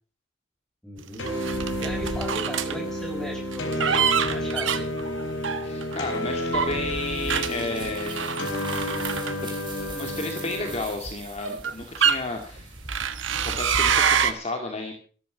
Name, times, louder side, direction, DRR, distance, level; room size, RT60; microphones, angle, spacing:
voice 1, 0.8-1.2 1.7-4.9, right 1 dB, 5° left, 1 dB, 5.2 m, -37 dB
sound 1, 1.2-10.8, left 1 dB, 65° left, 4.3 m, -31 dB
sound 2, 1.3-2.8 3.5-6.0 6.5-9.8 10.7-10.8 11.4-12.2 12.9-14.3, right 7 dB, 65° right, 1.4 m, -26 dB
voice 2, 5.6-8.4 9.4-12.8 13.4-14.9, left 2 dB, 30° left, 4 dB, 2.0 m, -33 dB
sound 3, 6.5-13.9, right 3 dB, 25° right, 4.1 m, -41 dB
13.5 x 13.5 x 6.0 m, 0.41 s
head